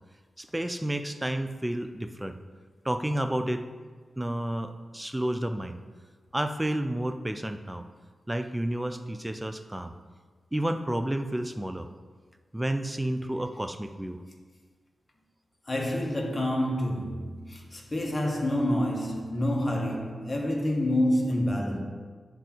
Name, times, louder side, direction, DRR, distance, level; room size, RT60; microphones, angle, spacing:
voice 1, 0.4-2.4 2.8-3.7 4.2-5.8 6.3-7.9 8.3-9.9 10.5-11.9 12.5-14.2, right 1 dB, 15° right, 0.7 m, -31 dB
voice 2, 15.7-21.8, left 1 dB, 30° left, 1.7 m, -28 dB
10.5 x 3.8 x 4.6 m
supercardioid pair, 45°, 0 cm